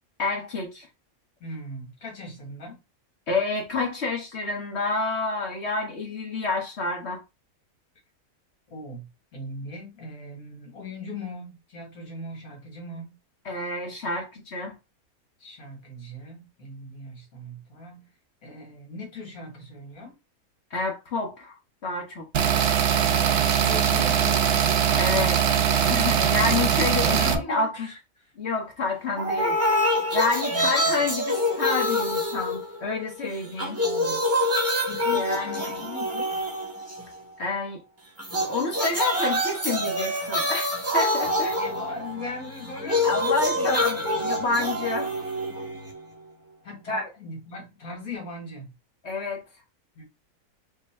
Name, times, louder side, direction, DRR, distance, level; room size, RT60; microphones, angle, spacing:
voice 1, 0.2-0.9 3.3-7.2 13.4-14.7 20.7-21.5 21.8-22.5 25.0-25.6 25.9-27.9 28.4-29.6 30.1-33.8 35.1-35.8 37.4-37.8 38.3-41.6 43.0-45.1 46.9-47.1 49.0-49.4, left 3 dB, 50° left, 1.3 m, -29 dB
voice 2, 1.4-2.8 8.7-13.2 15.4-18.1 18.4-20.1 23.0-24.5 26.5-28.0 30.5-30.7 33.8-34.3 34.9-36.3 41.6-43.1 43.5-43.8 46.6-48.7 50.0-50.1, left 2 dB, 80° left, 2.2 m, -39 dB
sound 1, 22.3-27.3, right 8 dB, 60° right, 0.6 m, -21 dB
sound 2, 29.2-33.1 33.4-37.2 38.2-46.2, left 1 dB, 10° right, 0.9 m, -26 dB
3.9 x 2.2 x 4.2 m
omnidirectional pair, 1.5 m